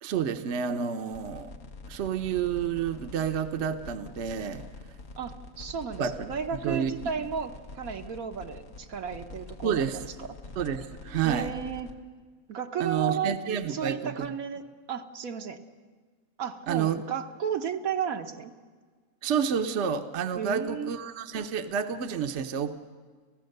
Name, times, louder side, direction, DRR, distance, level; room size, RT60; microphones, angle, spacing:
voice 1, 0.0-1.5 1.9-4.6 6.0-6.3 6.6-6.9 9.6-10.0 10.6-11.5 12.8-14.3 16.7-17.0 19.2-22.7, right 7 dB, 55° right, 7 dB, 1.1 m, -29 dB
sound 1, 1.1-11.9, left 3 dB, 65° left, 1.6 m, -46 dB
voice 2, 5.2-10.3 11.2-11.9 12.5-13.4 13.7-15.6 16.4-18.5 20.4-20.9, right 7 dB, 75° right, 6 dB, 1.4 m, -33 dB
29.5 x 15.5 x 6.7 m, 1.5 s
omnidirectional pair, 1.5 m